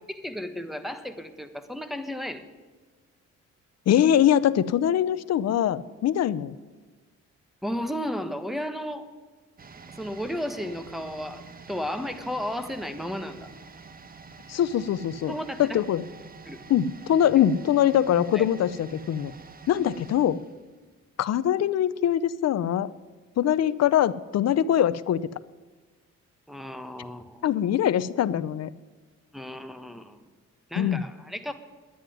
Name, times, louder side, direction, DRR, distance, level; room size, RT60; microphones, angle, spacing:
voice 1, 0.1-2.4 7.6-9.1 10.0-13.5 15.3-15.8 16.4-16.6 18.3-18.4 26.5-27.4 29.3-30.2 30.7-31.5, equal, ahead, 9 dB, 1.3 m, -34 dB
voice 2, 3.9-6.6 14.5-15.3 15.6-16.0 16.7-19.3 19.7-20.4 21.2-22.9 23.4-25.2 27.4-28.7 30.8-31.0, left 10 dB, 60° left, 16 dB, 0.6 m, -23 dB
sound 1, 9.6-21.3 21.6-21.7, right 5 dB, 30° right, 1.0 m, -47 dB
10.5 x 9.5 x 9.3 m, 1.4 s
cardioid pair, 90°, 30 cm